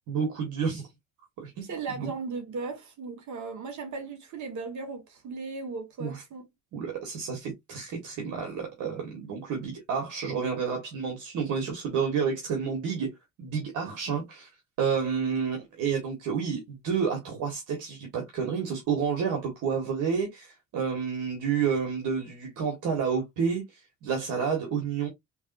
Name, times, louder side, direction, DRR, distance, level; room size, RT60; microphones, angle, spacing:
voice 1, 0.1-0.9 1.4-1.6 2.0-2.1 6.0-6.2 6.7-13.1 13.4-14.5 14.8-23.6 24.0-25.1, right 6 dB, 85° right, 1.8 m, -30 dB
voice 2, 1.6-6.4, right 4 dB, 70° right, 1.8 m, -37 dB
4.8 x 3.4 x 2.6 m
cardioid pair, 90°, 30 cm